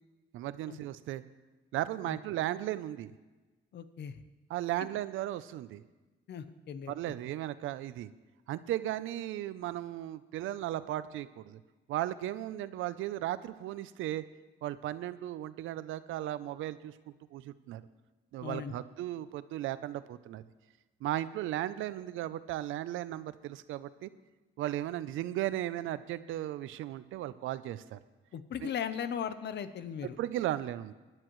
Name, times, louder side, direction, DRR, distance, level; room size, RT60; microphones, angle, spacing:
voice 1, 0.3-1.2 1.7-3.1 4.5-5.8 6.9-8.1 8.5-11.6 11.9-14.2 14.6-16.9 17.3-17.8 18.3-20.4 21.0-24.1 24.6-28.0 28.6-28.7 30.2-30.9, right 13 dB, 85° right, 15 dB, 0.6 m, -36 dB
voice 2, 3.7-4.2 4.8-4.9 6.3-6.9 18.4-18.8 28.3-30.2, left 8 dB, 60° left, 12 dB, 0.8 m, -38 dB
18.0 x 10.5 x 3.1 m, 1.2 s
cardioid pair, 90°, 20 cm